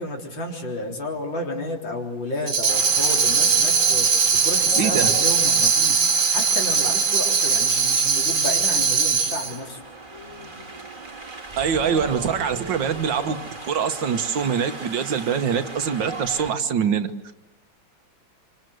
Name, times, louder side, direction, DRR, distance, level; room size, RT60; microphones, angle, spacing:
voice 1, 0.0-9.8, left 1 dB, 75° left, 1 dB, 4.4 m, -31 dB
Tambourine, 2.5-9.6, right 5 dB, 45° right, 1.6 m, -20 dB
Wind, 2.7-16.5, right 3 dB, 25° right, 1.9 m, -37 dB
voice 2, 4.8-5.1 11.6-13.4 13.6-17.1, right 7 dB, 70° right, 9 dB, 1.9 m, -24 dB
26.0 x 25.5 x 7.9 m, 0.99 s
omnidirectional pair, 2.1 m